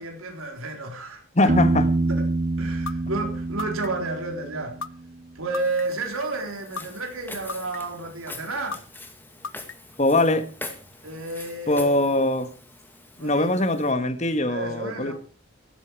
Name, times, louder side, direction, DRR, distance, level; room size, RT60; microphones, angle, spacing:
voice 1, 0.0-1.5 2.1-2.2 2.6-4.8 5.3-8.8 11.0-12.1 13.2-13.6 14.5-15.1, right 2 dB, 85° right, 4.0 m, -31 dB
voice 2, 1.3-1.9 10.0-10.5 11.7-12.5 13.2-15.1, left 2 dB, 35° left, 1.5 m, -22 dB
Piano, 1.5-5.2, right 2 dB, 35° right, 0.6 m, -26 dB
sound 1, 2.9-3.0 3.6-4.1 4.8-4.9 5.5-6.1 6.8-6.9 7.5-8.0 8.7-8.8 9.4-10.0, left 5 dB, 65° left, 0.8 m, -33 dB
Walk footsteps, 5.6-13.9, left 2 dB, 10° left, 2.2 m, -44 dB
16.0 x 13.5 x 4.8 m
head